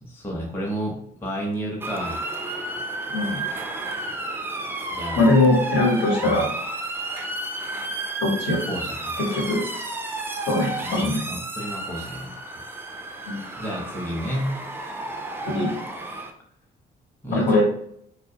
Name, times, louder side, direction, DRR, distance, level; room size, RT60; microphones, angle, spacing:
voice 1, 0.0-2.2 4.9-5.3 6.2-6.4 8.7-9.2 10.8-12.6 13.6-14.6 17.2-17.6, equal, 10° left, -3 dB, 0.7 m, -31 dB
Motor vehicle (road) / Siren, 1.8-16.3, right 2 dB, 10° right, 0.3 m, -32 dB
voice 2, 5.2-6.5 8.2-8.6 9.2-9.6 10.5-11.2 13.3-13.4 15.5-15.7 17.3-17.6, left 2 dB, 65° left, -2 dB, 1.0 m, -21 dB
2.2 x 2.1 x 2.7 m, 0.67 s
cardioid pair, 90°, 20 cm